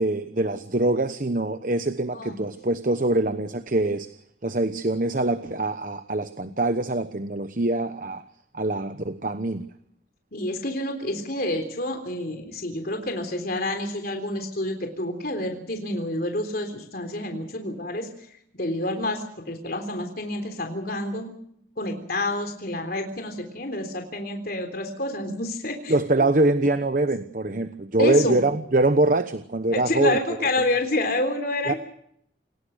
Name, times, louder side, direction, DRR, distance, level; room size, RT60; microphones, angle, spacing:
voice 1, 0.0-4.1 4.4-8.2 8.5-9.6 25.9-30.2 31.7-31.8, right 2 dB, 45° right, 10 dB, 1.0 m, -24 dB
voice 2, 10.3-18.1 18.5-21.3 21.8-25.9 28.0-28.4 29.7-31.8, left 1 dB, 50° left, 5 dB, 3.6 m, -28 dB
28.5 x 18.0 x 6.6 m, 0.70 s
head